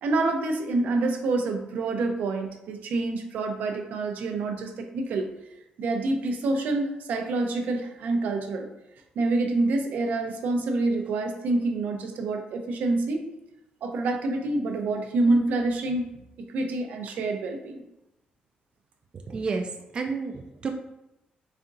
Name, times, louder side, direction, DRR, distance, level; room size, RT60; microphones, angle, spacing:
voice 1, 0.0-5.3 5.8-8.7 9.2-13.2 13.8-16.1 16.5-17.8, right 2 dB, 75° right, 4 dB, 0.6 m, -27 dB
voice 2, 19.3-20.7, right 4 dB, 35° right, 3 dB, 0.3 m, -31 dB
4.3 x 3.5 x 2.5 m, 0.90 s
cardioid pair, 145°, 3 cm